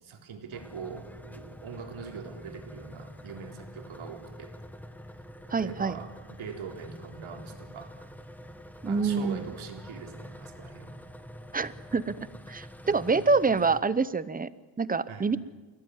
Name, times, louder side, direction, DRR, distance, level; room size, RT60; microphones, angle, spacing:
voice 1, 0.0-4.5 5.5-8.1 8.9-11.0 12.9-13.1 15.1-15.3, right 5 dB, 75° right, 3 dB, 4.0 m, -43 dB
sound 1, 0.5-13.8, equal, 5° left, 1.2 m, -46 dB
voice 2, 5.5-6.0 8.8-9.4 11.5-12.2 12.5-14.5 14.8-15.4, right 4 dB, 20° right, 16 dB, 0.7 m, -26 dB
27.5 x 17.5 x 9.6 m, 1.3 s
wide cardioid pair, 175°, 48 cm